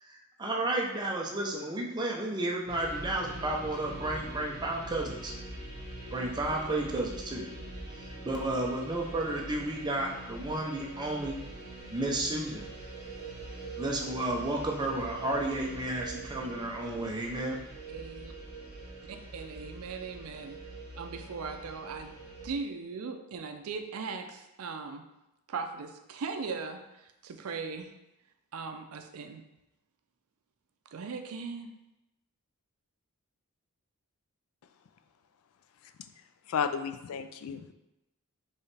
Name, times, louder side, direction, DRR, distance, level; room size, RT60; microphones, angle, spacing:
voice 1, 0.0-5.3 6.1-7.5 8.0-11.4 11.9-12.6 13.8-17.6, right 1 dB, 20° right, -1 dB, 0.6 m, -32 dB
sound 1, 2.7-22.5, right 2 dB, 50° right, 1.1 m, -44 dB
voice 2, 17.9-18.3 19.3-20.6 21.0-22.2 22.4-25.1 25.5-27.9 28.5-29.4 30.9-31.7, right 4 dB, 80° right, 6 dB, 0.4 m, -39 dB
voice 3, 36.5-37.7, left 6 dB, 70° left, 9 dB, 0.3 m, -33 dB
4.6 x 3.1 x 3.3 m, 0.92 s
head